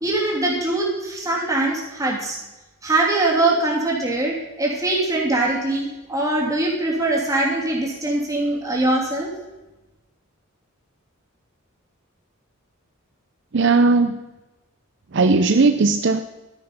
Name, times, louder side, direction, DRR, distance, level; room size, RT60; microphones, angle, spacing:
voice 1, 0.0-2.4 2.8-9.3, right 2 dB, 15° right, -3 dB, 3.0 m, -22 dB
voice 2, 13.5-14.2 15.1-16.2, right 3 dB, 55° right, 8 dB, 0.6 m, -17 dB
13.0 x 10.0 x 5.5 m, 1.1 s
head